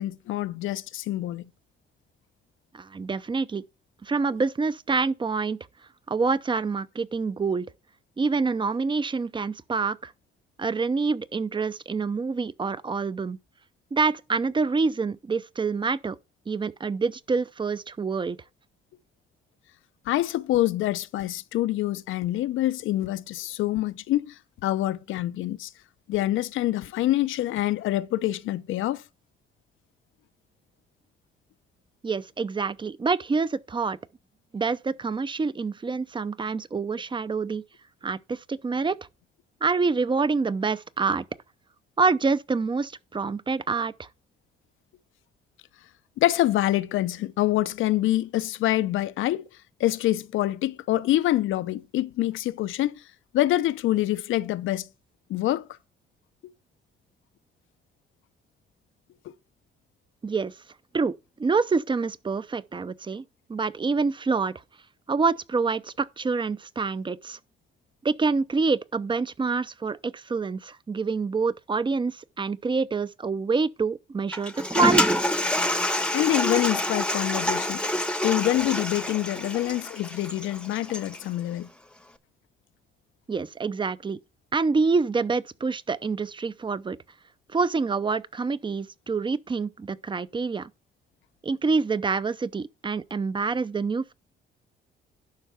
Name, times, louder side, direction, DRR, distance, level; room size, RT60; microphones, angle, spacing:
voice 1, 0.0-1.4 20.1-24.3 24.6-25.7 26.1-29.0 46.2-49.4 49.8-52.9 53.3-54.9 55.3-55.7 76.1-77.8 78.2-81.7, left 14 dB, 80° left, 0.7 m, -26 dB
voice 2, 2.7-3.6 4.0-5.6 6.1-7.7 8.2-10.1 10.6-13.4 13.9-16.2 16.5-18.4 32.0-34.0 34.5-37.6 38.0-39.0 39.6-41.3 42.0-44.1 60.2-60.5 60.9-63.2 63.5-64.5 65.1-67.4 68.0-75.2 83.3-84.2 84.5-87.0 87.5-90.7 91.4-94.1, right 4 dB, 25° right, 0.6 m, -26 dB
Toilet flush, 74.3-81.2, left 1 dB, 5° left, 0.9 m, -27 dB
11.5 x 4.6 x 5.7 m
cardioid pair, 90°, 20 cm